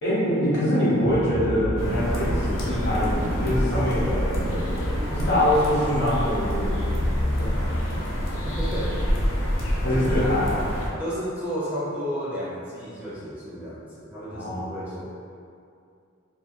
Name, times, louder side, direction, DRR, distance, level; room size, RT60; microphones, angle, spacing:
voice 1, 0.0-4.7 5.1-7.0 7.4-7.5 9.8-10.5 14.3-14.8, equal, 60° left, -9 dB, 0.8 m, -24 dB
sound 1, 1.0-5.5, equal, 65° right, 0.6 m, -30 dB
sound 2, 1.8-10.9, equal, 85° left, 0.5 m, -27 dB
voice 2, 8.4-9.0 9.9-10.3 11.0-15.0, equal, 10° right, -10 dB, 0.5 m, -32 dB
2.7 x 2.3 x 2.2 m, 2.4 s
head